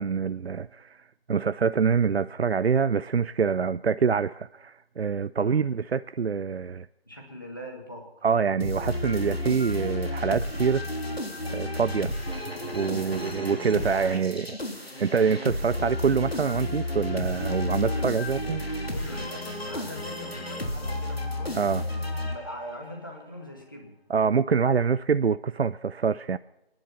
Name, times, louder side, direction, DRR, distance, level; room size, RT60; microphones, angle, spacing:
voice 1, 0.0-6.9 8.2-10.9 11.4-12.1 12.7-14.6 15.0-18.6 21.5-21.8 24.1-26.4, right 6 dB, 80° right, 0.5 m, -25 dB
voice 2, 7.1-8.1 13.0-13.3 17.8-23.9, equal, 20° left, 2.0 m, -42 dB
sound 1, 8.6-22.9, left 1 dB, 75° left, 3.2 m, -32 dB
27.0 x 10.5 x 4.3 m
figure-of-eight pair, 175°, 31 cm